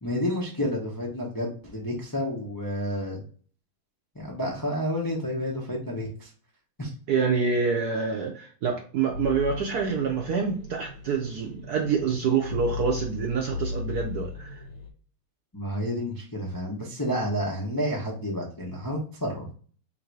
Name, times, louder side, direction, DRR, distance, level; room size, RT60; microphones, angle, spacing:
voice 1, 0.0-3.2 4.1-6.3 6.8-6.9 15.5-19.5, equal, 30° left, -3 dB, 0.3 m, -30 dB
voice 2, 7.1-14.6, right 5 dB, 70° right, 1 dB, 0.9 m, -26 dB
sound 1, 9.1-14.9, left 5 dB, 75° left, 1.9 m, -37 dB
3.8 x 2.6 x 4.6 m, 0.43 s
omnidirectional pair, 2.3 m